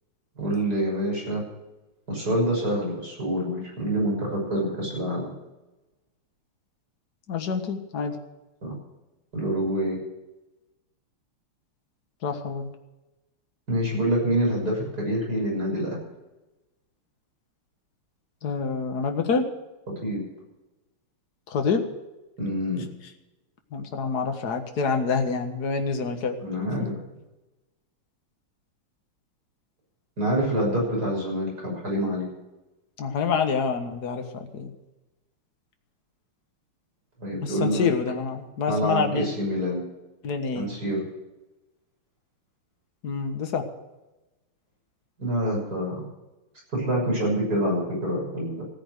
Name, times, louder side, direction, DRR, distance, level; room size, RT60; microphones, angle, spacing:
voice 1, 0.4-1.4 2.1-5.3 8.6-8.7 9.3-10.0 13.7-16.0 20.0-20.2 22.4-22.8 26.4-26.9 30.2-32.2 37.2-37.9 38.7-39.8 40.5-41.1 45.2-46.0 46.7-48.6, right 1 dB, 45° right, -2 dB, 7.0 m, -26 dB
voice 2, 7.3-8.2 12.2-12.7 18.4-19.5 21.5-21.8 23.7-26.4 33.0-34.3 34.5-34.7 37.4-39.3 40.2-40.7 43.0-43.6, left 5 dB, 50° left, 5 dB, 2.0 m, -27 dB
16.0 x 9.9 x 6.7 m, 1.0 s
omnidirectional pair, 2.4 m